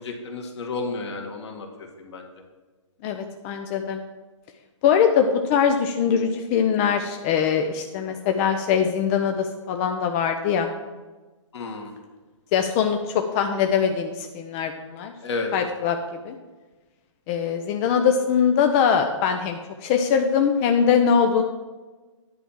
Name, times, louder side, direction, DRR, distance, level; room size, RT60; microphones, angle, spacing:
voice 1, 0.0-2.3 11.5-11.9 15.2-15.5, left 3 dB, 60° left, 2 dB, 1.9 m, -32 dB
voice 2, 3.0-4.0 4.8-10.7 12.5-15.1 15.5-16.0 16.2-16.4 17.3-21.4, left 7 dB, 25° left, 5 dB, 0.5 m, -22 dB
10.0 x 4.3 x 7.2 m, 1.3 s
hypercardioid pair, 140°, 17 cm